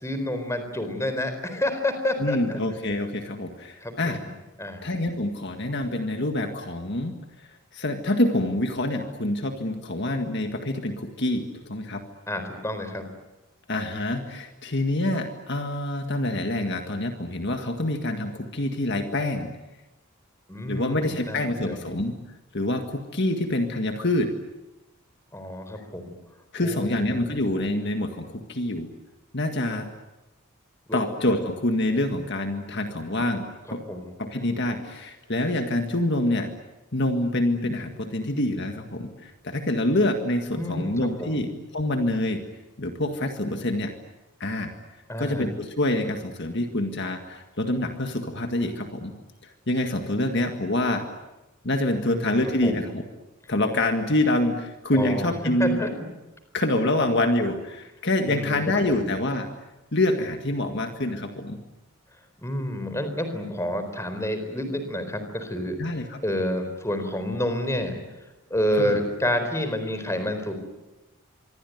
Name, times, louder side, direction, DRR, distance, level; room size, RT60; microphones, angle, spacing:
voice 1, 0.0-2.6 3.8-4.3 4.6-4.9 12.3-13.1 20.5-21.4 21.7-21.8 25.3-26.1 26.6-27.3 30.9-31.0 33.7-34.1 40.5-40.9 41.2-41.4 45.1-45.5 52.1-52.4 52.6-52.9 54.9-55.3 55.6-55.9 58.3-59.1 62.4-65.8 66.2-68.0 68.5-70.5, left 1 dB, 15° left, 8 dB, 4.2 m, -29 dB
voice 2, 2.2-4.2 4.8-7.2 7.7-12.0 13.7-19.5 20.7-22.2 22.5-24.3 26.5-28.9 29.3-29.9 30.9-33.9 34.2-36.5 36.9-42.4 42.8-43.9 44.4-44.7 45.2-49.1 49.4-51.1 51.6-53.0 53.5-55.8 56.5-59.5 59.9-61.6 65.8-66.2 68.8-69.0, left 1 dB, 50° left, 5 dB, 1.8 m, -26 dB
26.0 x 23.5 x 9.4 m, 1.0 s
head